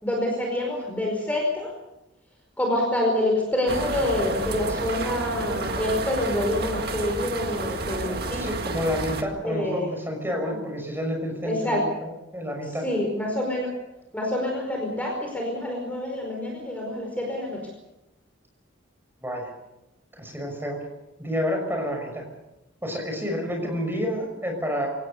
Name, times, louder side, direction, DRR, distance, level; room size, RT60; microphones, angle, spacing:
voice 1, 0.0-1.7 2.6-8.5 9.4-9.9 11.4-11.8 12.8-13.7 14.1-17.6, left 1 dB, 5° left, -1 dB, 5.1 m, -27 dB
sound 1, 3.7-9.2, right 3 dB, 50° right, 2.0 m, -30 dB
voice 2, 8.1-11.8 12.3-12.9 19.2-19.5 20.2-20.9 21.2-22.2 22.8-24.9, equal, 10° right, 3 dB, 6.2 m, -29 dB
27.0 x 18.0 x 6.8 m, 0.94 s
head